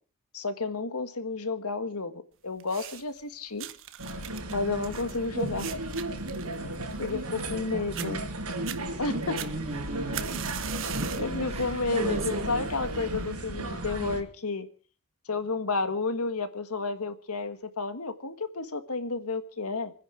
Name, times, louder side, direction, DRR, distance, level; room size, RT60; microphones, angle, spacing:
voice 1, 0.3-2.1 2.4-3.7 4.5-5.8 7.0-8.2 9.0-9.4 10.8-10.9 11.2-14.7 15.3-19.9, left 3 dB, 80° left, 1.6 m, -31 dB
sound 1, 2.6-3.2 3.6-7.6 7.9-8.1 8.5-8.8 9.4-11.3 11.8-12.1 12.9-13.0, right 11 dB, 65° right, 1.2 m, -40 dB
sound 2, 4.0-14.2, right 1 dB, 80° right, 4.9 m, -34 dB
voice 2, 7.7-8.2 9.1-10.3 10.8-12.5, right 3 dB, 30° right, 1.5 m, -36 dB
28.0 x 10.5 x 4.7 m
head